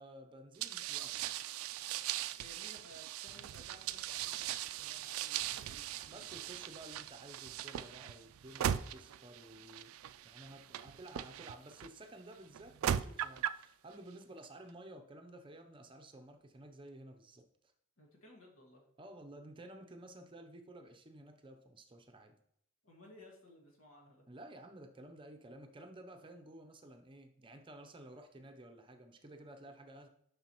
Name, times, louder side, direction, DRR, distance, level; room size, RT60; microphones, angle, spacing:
voice 1, 0.0-1.3 6.0-10.0 10.2-17.4 19.0-22.3 24.3-30.1, right 1 dB, 25° right, 5 dB, 0.6 m, -53 dB
sound 1, 0.6-11.9 12.5-13.7, right 10 dB, 85° right, 0.3 m, -39 dB
voice 2, 2.2-6.5 18.0-18.9 22.8-24.2, left 1 dB, 80° left, 0 dB, 1.8 m, -59 dB
7.1 x 5.5 x 3.0 m, 0.71 s
head